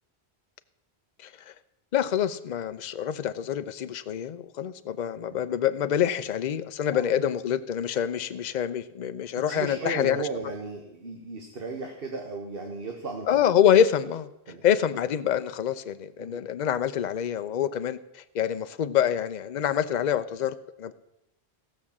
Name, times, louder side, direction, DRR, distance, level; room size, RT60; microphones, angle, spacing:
voice 1, 1.2-1.5 1.9-10.3 13.3-14.3 14.6-20.9, left 9 dB, 50° left, 12 dB, 0.7 m, -26 dB
voice 2, 9.5-13.3 14.5-14.6 16.2-16.4, right 3 dB, 60° right, 2 dB, 1.5 m, -35 dB
16.0 x 6.4 x 7.2 m, 0.88 s
omnidirectional pair, 1.1 m